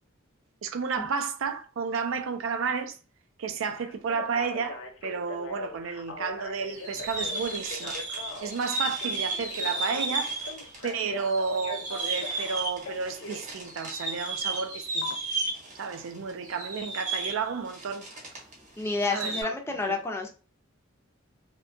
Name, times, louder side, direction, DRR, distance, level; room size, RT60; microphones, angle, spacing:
voice 1, 0.6-3.0 3.4-8.0 8.4-10.3 10.8-15.1 15.8-18.1 19.1-19.4 19.9-20.0, right 5 dB, 80° right, 0.4 m, -32 dB
Telephone, 3.9-13.4 15.0-15.1, left 3 dB, 75° left, 0.6 m, -41 dB
sound 1, 6.7-10.9 11.2-18.5 18.8-19.4, right 2 dB, 40° right, 0.8 m, -34 dB
voice 2, 18.8-20.3, left 3 dB, 15° left, 0.4 m, -29 dB
2.6 x 2.2 x 2.5 m
head